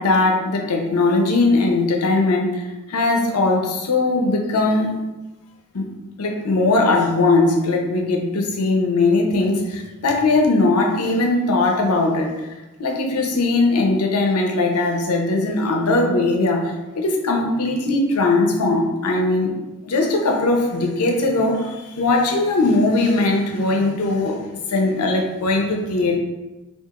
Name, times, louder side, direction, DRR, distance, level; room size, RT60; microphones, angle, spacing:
voice 1, 0.0-5.0 5.7-5.9 6.2-12.5 12.8-19.5 19.9-24.4 24.7-26.2, left 2 dB, 90° left, 2 dB, 0.6 m, -19 dB
2.8 x 2.4 x 3.6 m, 1.1 s
head